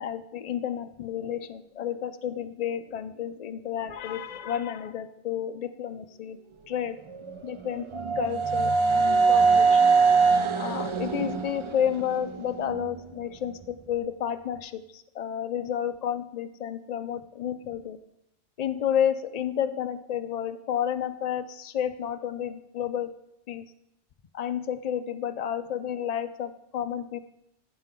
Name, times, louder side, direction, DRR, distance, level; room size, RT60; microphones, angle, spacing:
voice 1, 0.0-6.4 6.7-7.0 7.4-7.9 8.2-9.9 10.6-18.0 18.6-23.1 23.5-23.6 24.3-27.2, left 9 dB, 65° left, 10 dB, 0.4 m, -31 dB
sound 1, 7.1-13.0, right 4 dB, 55° right, 0.3 m, -23 dB
15.0 x 5.3 x 3.7 m, 0.81 s
omnidirectional pair, 1.3 m